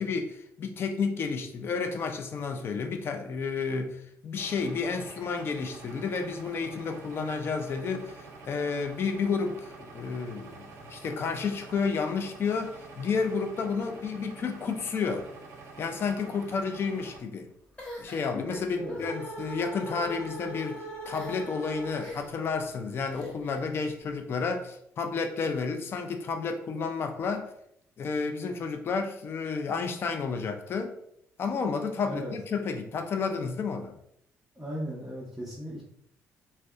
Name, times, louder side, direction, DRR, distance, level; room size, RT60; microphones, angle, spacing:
voice 1, 0.0-15.3 15.8-17.5 18.0-27.5 28.0-30.9 31.4-34.0, left 5 dB, 45° left, 6 dB, 0.4 m, -31 dB
sound 1, 4.4-17.2, right 4 dB, 65° right, 0.5 m, -47 dB
sound 2, 17.8-19.1 19.8-20.1 21.0-21.5 22.0-22.4 23.1-23.7, left 1 dB, 20° left, 1.0 m, -43 dB
sound 3, 18.2-22.4, right 1 dB, 75° left, 0.9 m, -40 dB
voice 2, 34.6-35.8, equal, 5° right, -8 dB, 0.6 m, -36 dB
2.6 x 2.1 x 2.2 m, 0.71 s
cardioid pair, 110°, 6 cm